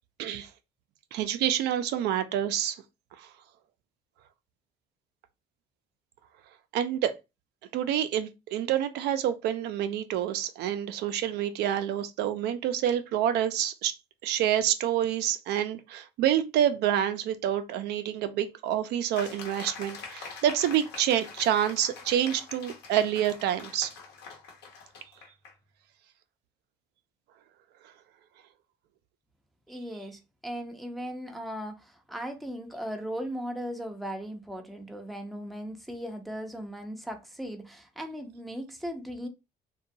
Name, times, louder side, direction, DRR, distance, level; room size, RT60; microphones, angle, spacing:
voice 1, 0.2-0.5 1.1-2.8 3.2-3.3 6.7-7.1 7.7-14.0 14.2-23.9, right 10 dB, 75° right, 0.4 m, -27 dB
sound 1, 19.1-25.5, left 5 dB, 80° left, 0.9 m, -44 dB
voice 2, 29.7-39.3, equal, ahead, 0.5 m, -37 dB
2.8 x 2.2 x 2.6 m
cardioid pair, 110°, 17 cm